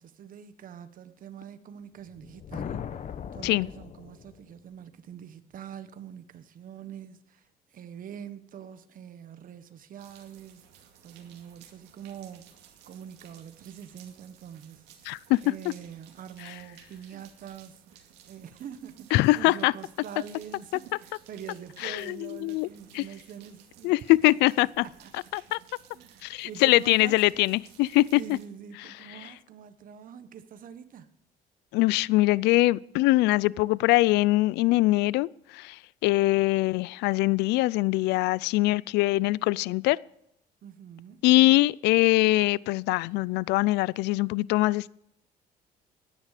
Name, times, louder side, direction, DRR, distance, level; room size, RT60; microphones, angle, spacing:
voice 1, 0.0-2.8 3.3-12.6 12.9-24.2 24.8-25.1 25.9-27.2 28.1-31.1 40.6-41.2, right 8 dB, 55° right, 1.4 m, -45 dB
sound 1, 2.1-4.6, left 8 dB, 45° left, 1.0 m, -39 dB
sound 2, 10.0-28.5, right 9 dB, 90° right, 2.3 m, -56 dB
voice 2, 15.1-15.4 19.1-19.7 21.8-22.7 22.9-23.0 23.8-24.8 25.3-25.6 26.2-28.2 31.7-40.0 41.2-44.9, left 19 dB, 90° left, 0.4 m, -23 dB
16.5 x 11.0 x 5.0 m
cardioid pair, 110°, 17 cm